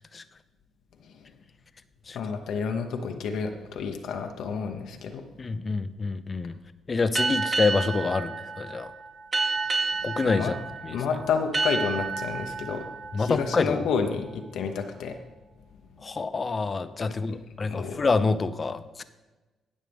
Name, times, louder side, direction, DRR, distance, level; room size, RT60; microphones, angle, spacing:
voice 1, 2.1-5.2 10.3-10.5 10.9-12.8 13.1-15.2 17.6-18.1, left 6 dB, 75° left, 4 dB, 0.9 m, -30 dB
voice 2, 5.4-6.6 6.9-8.9 10.0-10.5 10.8-11.0 13.1-13.9 16.0-19.0, left 4 dB, 35° left, 12 dB, 0.6 m, -27 dB
sound 1, 7.2-14.4, right 4 dB, 40° right, 2.2 m, -31 dB
18.5 x 6.4 x 3.5 m, 1.2 s
cardioid pair, 90°, 0 cm